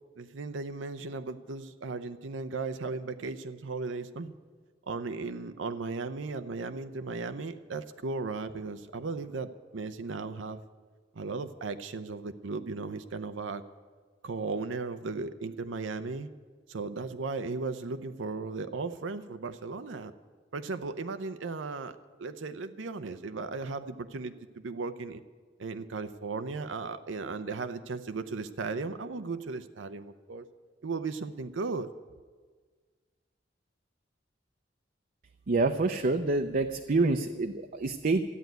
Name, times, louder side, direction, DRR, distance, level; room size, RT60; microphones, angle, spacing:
voice 1, 0.2-4.3 4.9-10.6 11.2-13.6 14.2-16.3 16.7-20.1 20.5-25.2 25.6-30.4 30.8-31.9, right 4 dB, 85° right, 9 dB, 0.6 m, -36 dB
voice 2, 35.5-38.2, right 3 dB, 50° right, 6 dB, 0.6 m, -27 dB
13.5 x 9.2 x 9.2 m, 1.5 s
head